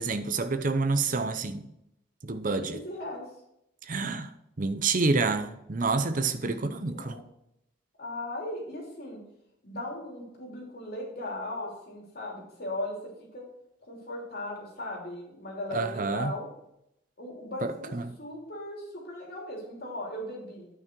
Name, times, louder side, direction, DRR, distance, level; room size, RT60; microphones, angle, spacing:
voice 1, 0.0-1.6 2.2-2.8 3.9-4.3 4.6-7.2 15.7-16.3 17.6-18.0, right 3 dB, 45° right, 0.7 m, -28 dB
voice 2, 2.6-3.2 6.6-7.2 8.0-9.2 9.6-13.0 13.3-13.4 13.9-16.5 17.2-20.7, left 1 dB, 50° left, 3.2 m, -38 dB
9.6 x 6.0 x 4.6 m
head